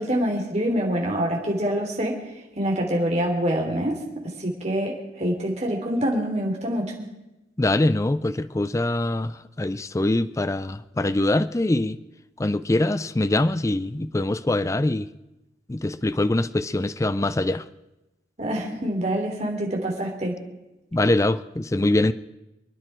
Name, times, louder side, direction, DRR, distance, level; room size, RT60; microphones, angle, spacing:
voice 1, 0.0-2.1 2.5-4.0 4.4-7.1 18.4-20.3, equal, 35° right, 3.2 m, -25 dB
voice 2, 7.6-12.0 12.4-15.1 15.7-17.6 20.9-22.1, left 2 dB, 15° left, 0.4 m, -23 dB
27.5 x 10.0 x 4.5 m
head